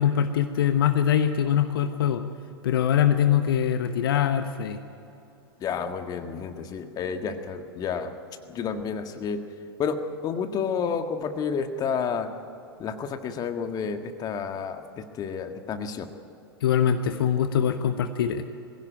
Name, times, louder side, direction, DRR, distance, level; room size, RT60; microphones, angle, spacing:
voice 1, 0.0-2.2 2.6-4.8 16.6-18.4, left 9 dB, 60° left, 8 dB, 1.0 m, -23 dB
voice 2, 5.6-8.1 8.5-9.4 9.8-10.0 10.2-12.3 12.8-14.8 15.2-16.1, left 6 dB, 30° left, 7 dB, 1.7 m, -30 dB
21.5 x 16.5 x 9.1 m, 2.8 s
figure-of-eight pair, 95°, 13 cm